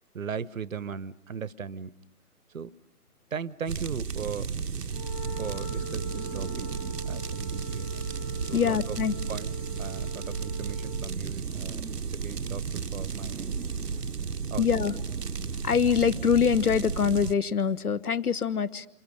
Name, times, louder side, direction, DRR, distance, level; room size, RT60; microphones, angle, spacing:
voice 1, 0.1-1.9 2.5-2.8 3.3-4.6 5.3-6.7 7.0-8.0 8.5-8.8 9.3-9.5 9.8-13.6 14.5-14.7, right 6 dB, 55° right, 19 dB, 1.0 m, -37 dB
sound 1, 3.7-17.3, right 5 dB, 80° right, 1.0 m, -33 dB
Wind instrument woodwind instrument, 4.9-11.2, right 1 dB, 20° left, 1.0 m, -43 dB
voice 2, 8.5-9.1 14.6-15.0 15.6-18.9, left 7 dB, 70° left, 17 dB, 1.3 m, -24 dB
28.0 x 28.0 x 6.4 m, 0.75 s
figure-of-eight pair, 145°, 47 cm